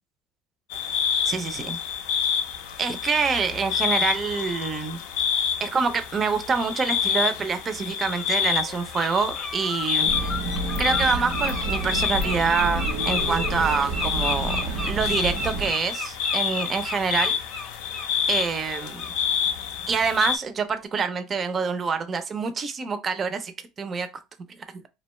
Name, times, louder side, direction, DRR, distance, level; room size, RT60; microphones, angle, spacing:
sound 1, 0.7-20.4, left 8 dB, 85° left, 0.4 m, -28 dB
voice 1, 1.2-1.8 2.8-5.0 5.6-10.1 10.8-17.4 18.3-19.0 19.9-23.5 23.8-24.1, right 5 dB, 30° right, 0.4 m, -26 dB
Bird, 8.1-8.3 8.7-9.1 9.3-18.1 18.4-18.6 19.0-19.1, left 2 dB, 25° left, 0.7 m, -33 dB
sound 2, 10.0-15.7, right 2 dB, 85° right, 0.7 m, -29 dB
2.5 x 2.1 x 3.0 m
cardioid pair, 135°, 0 cm